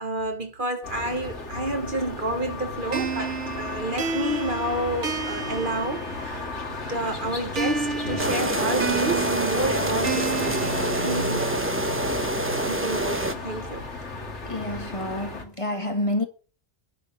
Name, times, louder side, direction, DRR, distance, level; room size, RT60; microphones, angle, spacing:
voice 1, 0.0-6.5 6.9-10.8 11.0-11.7 12.2-12.3 12.6-13.9, right 1 dB, 45° right, 1.6 m, -30 dB
sound 1, 0.8-15.5, left 2 dB, 75° left, 2.4 m, -34 dB
sound 2, 2.9-6.5 7.6-11.6, right 5 dB, 75° right, 1.8 m, -32 dB
sound 3, 8.2-13.3, right 1 dB, 10° right, 0.9 m, -26 dB
voice 2, 14.4-16.2, left 1 dB, 25° left, 1.7 m, -28 dB
10.0 x 6.7 x 8.5 m
omnidirectional pair, 1.2 m